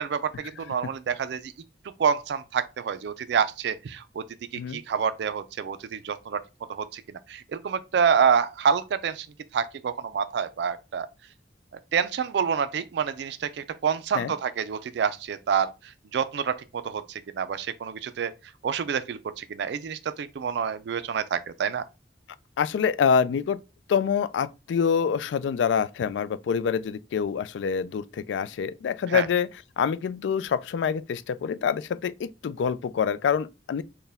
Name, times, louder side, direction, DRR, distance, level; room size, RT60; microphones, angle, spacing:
voice 1, 0.0-1.5 2.0-4.2 4.7-6.4 6.7-7.0 7.3-9.3 9.5-11.1 11.9-15.7 16.1-18.3 18.6-21.8 29.1-29.3, right 7 dB, 70° right, 0.3 m, -27 dB
voice 2, 22.6-23.6 23.9-29.5 29.8-33.8, left 7 dB, 80° left, 0.3 m, -26 dB
4.3 x 2.2 x 3.4 m
head